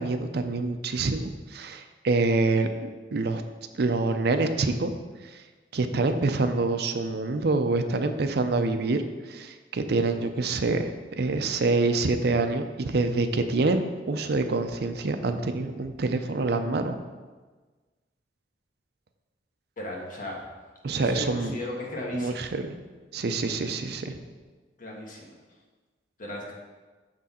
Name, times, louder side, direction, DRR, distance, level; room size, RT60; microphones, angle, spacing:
voice 1, 0.0-3.4 3.7-4.9 5.2-5.4 5.7-10.9 11.2-17.0 20.8-21.5 22.1-22.7 23.1-24.2, right 3 dB, 65° right, 8 dB, 0.5 m, -26 dB
voice 2, 19.8-20.4 21.0-22.5 24.8-25.3 26.2-26.5, left 1 dB, 50° left, -2 dB, 1.4 m, -36 dB
6.3 x 6.0 x 4.3 m, 1.3 s
head